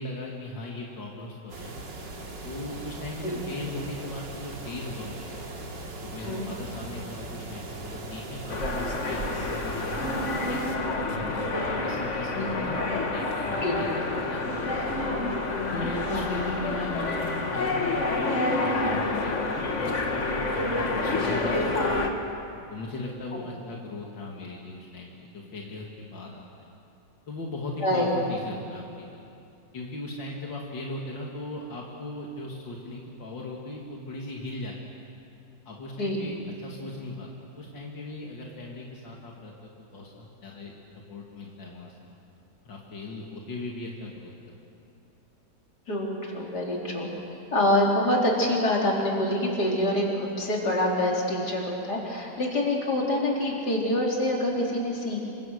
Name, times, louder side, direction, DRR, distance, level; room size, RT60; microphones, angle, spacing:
voice 1, 0.0-1.7 2.4-5.4 6.0-10.1 10.5-11.4 11.8-15.0 15.7-22.0 22.7-26.7 27.3-29.2 29.7-34.9 35.7-37.3 37.5-40.7 41.1-41.9 42.6-44.3, left 2 dB, 90° left, -2 dB, 2.9 m, -38 dB
sound 1, 1.5-10.8, right 2 dB, 80° right, 3.1 m, -39 dB
sound 2, 8.5-22.1, left 2 dB, 40° left, 2.0 m, -28 dB
voice 2, 27.8-28.2 36.0-36.3 45.9-47.1 47.5-55.3, left 1 dB, 60° left, -2 dB, 4.4 m, -26 dB
28.0 x 25.0 x 6.6 m, 2.6 s
omnidirectional pair, 1.9 m